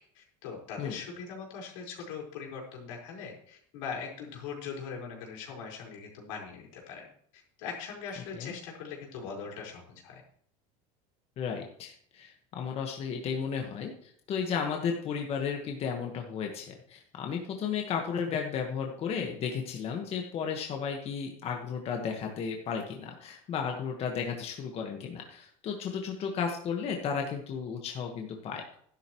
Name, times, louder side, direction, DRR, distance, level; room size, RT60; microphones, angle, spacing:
voice 1, 0.1-7.0 7.3-10.2, left 6 dB, 85° left, -1 dB, 4.8 m, -41 dB
voice 2, 11.4-28.8, left 6 dB, 40° left, 2 dB, 1.5 m, -34 dB
12.5 x 11.5 x 3.1 m, 0.63 s
supercardioid pair, 135°, 16 cm